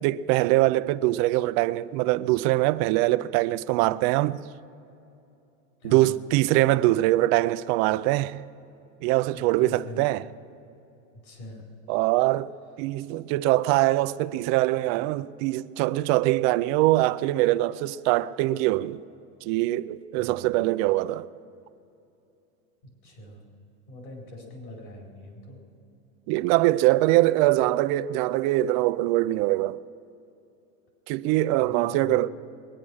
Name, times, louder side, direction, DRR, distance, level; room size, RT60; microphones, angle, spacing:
voice 1, 0.0-4.5 5.8-8.4 9.0-10.2 11.9-12.5 12.8-19.0 19.4-21.3 26.3-29.8 31.1-32.3, right 17 dB, 40° right, 0.4 m, -23 dB
voice 2, 5.8-6.2 9.3-10.1 11.2-11.6 20.2-20.5 23.0-23.4 23.9-25.6 31.5-32.2, left 2 dB, 50° left, 4.5 m, -42 dB
22.0 x 9.8 x 6.3 m
supercardioid pair, 150°, 37 cm